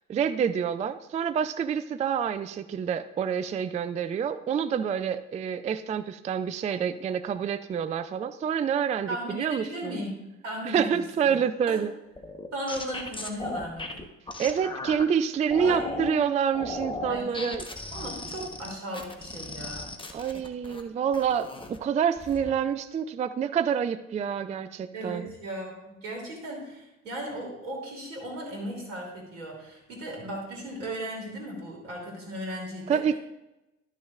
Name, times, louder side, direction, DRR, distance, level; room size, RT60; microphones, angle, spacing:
voice 1, 0.1-10.0 10.6-11.9 14.4-17.6 20.1-25.3 32.9-33.2, right 7 dB, 20° right, 12 dB, 0.4 m, -27 dB
voice 2, 9.1-10.1 10.4-10.8 11.2-11.4 11.7-11.8 12.5-14.0 15.6-16.3 17.1-17.5 17.9-19.9 24.9-33.0, right 1 dB, 75° right, 0 dB, 3.0 m, -36 dB
sound 1, 12.2-15.0 15.5-16.2 16.5-20.8 21.1-21.8 22.2-22.5, left 2 dB, 15° left, 1.1 m, -37 dB
13.0 x 6.4 x 2.5 m, 0.94 s
figure-of-eight pair, 55°, 38 cm